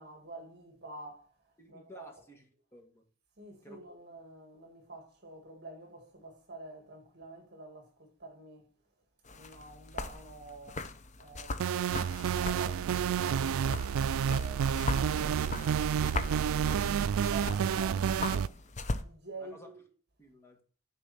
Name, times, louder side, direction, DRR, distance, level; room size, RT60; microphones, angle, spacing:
voice 1, 0.0-2.1 3.4-8.7 9.3-10.9 11.2-13.9 14.3-19.8, right 2 dB, 50° right, 1.9 m, -48 dB
voice 2, 1.6-3.0 3.6-3.8 19.4-19.7 20.2-20.6, equal, 10° left, 1.7 m, -53 dB
sound 1, 9.2-19.0, left 2 dB, 35° left, 0.7 m, -40 dB
sound 2, 11.6-18.5, right 8 dB, 80° right, 0.3 m, -29 dB
9.7 x 4.2 x 5.6 m
head